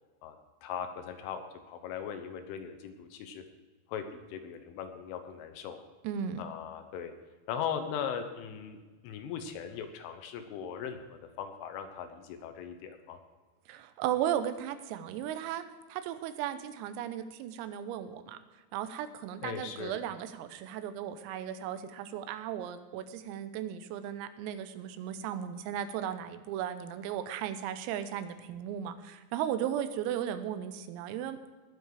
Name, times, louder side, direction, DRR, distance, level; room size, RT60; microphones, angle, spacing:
voice 1, 0.2-3.4 3.9-5.8 6.4-7.1 7.5-13.2 19.4-19.9, left 8 dB, 75° left, 7 dB, 3.3 m, -39 dB
voice 2, 6.1-6.4 13.7-15.6 15.9-18.4 18.7-31.5, right 10 dB, 85° right, 10 dB, 3.5 m, -36 dB
20.0 x 7.4 x 4.8 m, 1.3 s
omnidirectional pair, 6.0 m